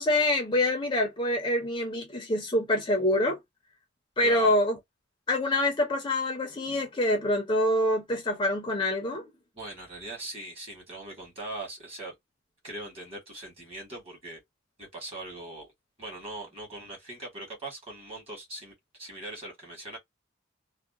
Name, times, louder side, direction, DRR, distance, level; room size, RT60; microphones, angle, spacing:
voice 1, 0.0-3.4 4.2-4.8 5.3-9.2, left 1 dB, 25° left, 0.5 m, -26 dB
voice 2, 4.2-4.5 9.5-12.1 12.6-14.4 14.8-15.7 16.0-20.0, right 2 dB, 30° right, 1.3 m, -40 dB
2.7 x 2.1 x 2.3 m
head